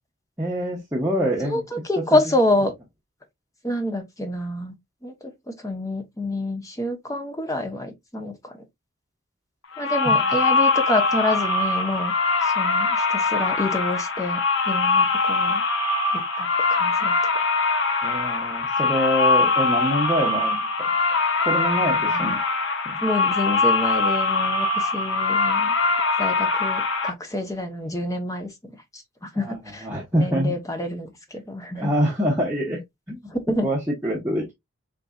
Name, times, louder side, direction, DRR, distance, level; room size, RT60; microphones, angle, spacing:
voice 1, 0.4-1.6 10.1-10.2 18.0-20.7 21.5-22.4 22.8-23.0 29.4-30.5 31.8-32.8 33.1-33.3 33.6-34.5, equal, 10° right, 0.9 m, -25 dB
voice 2, 1.5-2.7 3.6-4.7 5.0-8.6 9.8-12.1 12.4-14.4 14.7-15.6 16.1-17.3 22.0-22.4 23.0-25.7 26.2-31.9 33.3-33.7, left 1 dB, 15° left, 0.8 m, -27 dB
sound 1, 9.7-27.1, left 3 dB, 60° left, 0.8 m, -22 dB
4.0 x 3.9 x 2.3 m
head